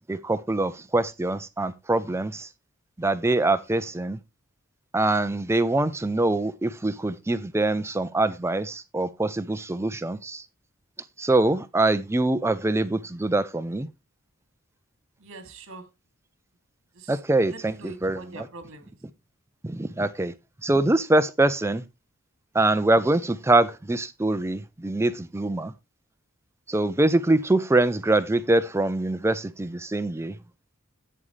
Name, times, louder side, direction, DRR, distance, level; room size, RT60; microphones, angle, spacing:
voice 1, 0.0-2.5 3.0-4.2 4.9-10.5 11.2-13.9 17.1-18.4 19.6-20.3 20.6-21.8 22.5-25.7 26.7-30.4, right 2 dB, 10° right, 0.4 m, -24 dB
voice 2, 15.2-15.9 16.9-17.2 17.5-19.0, right 3 dB, 65° right, 2.6 m, -43 dB
11.0 x 8.7 x 3.2 m
head